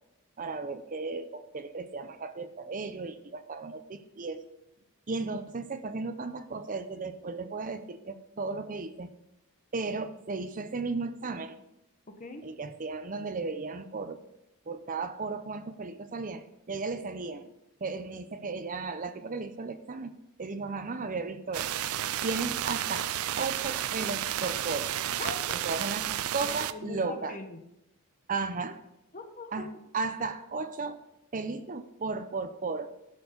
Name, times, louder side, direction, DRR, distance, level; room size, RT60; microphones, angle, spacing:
voice 1, 0.4-4.4 5.1-9.1 9.7-11.6 12.4-14.2 14.7-17.5 17.8-20.1 20.4-21.7 22.2-24.9 25.6-27.4 28.3-28.8 29.5-31.0 31.3-32.9, right 4 dB, 40° right, 11 dB, 0.6 m, -35 dB
voice 2, 12.1-12.4 25.2-25.7 26.4-27.6 29.1-29.7, left 3 dB, 35° left, 7 dB, 1.0 m, -41 dB
sound 1, 21.5-26.7, right 11 dB, 80° right, 0.4 m, -32 dB
11.5 x 6.3 x 5.2 m, 0.84 s
head